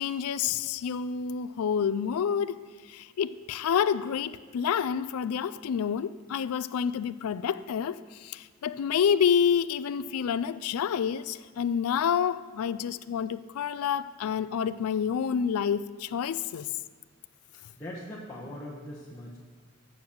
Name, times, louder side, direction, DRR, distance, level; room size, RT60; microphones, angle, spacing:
voice 1, 0.0-2.6 2.9-16.7, left 7 dB, 90° left, 0.3 m, -28 dB
voice 2, 17.8-19.4, left 1 dB, 15° left, 1.1 m, -40 dB
7.8 x 6.4 x 7.0 m
head